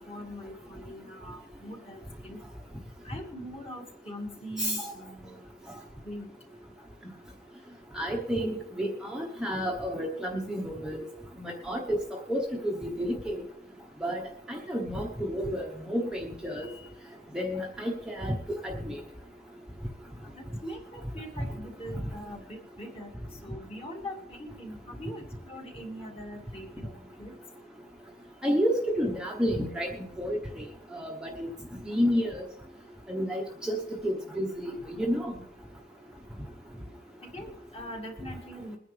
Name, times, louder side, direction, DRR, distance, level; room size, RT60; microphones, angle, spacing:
voice 1, 0.0-2.4 3.0-5.5 6.0-6.3 20.3-27.3 37.2-38.8, equal, 25° left, 1 dB, 2.0 m, -42 dB
voice 2, 4.6-4.9 7.9-11.0 11.4-13.4 14.0-14.2 14.5-16.7 17.3-18.3 18.6-19.0 28.4-29.9 30.2-30.4 30.9-31.5 31.8-32.4 33.1-35.3, equal, 5° right, -1 dB, 1.0 m, -30 dB
22.0 x 9.8 x 3.3 m, 0.80 s
head